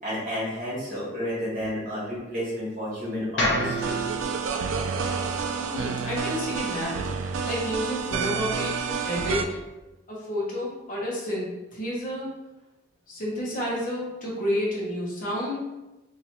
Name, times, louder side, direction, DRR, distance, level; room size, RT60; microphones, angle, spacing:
voice 1, 0.0-4.0, equal, 40° right, -6 dB, 1.4 m, -31 dB
sound 1, 3.4-7.5, left 1 dB, 70° left, 0.8 m, -32 dB
sound 2, 3.5-9.4, right 5 dB, 80° right, 0.3 m, -29 dB
voice 2, 5.6-9.5 10.1-12.3 13.1-15.6, equal, 45° left, -5 dB, 0.9 m, -30 dB
2.9 x 2.7 x 4.2 m, 1.0 s
head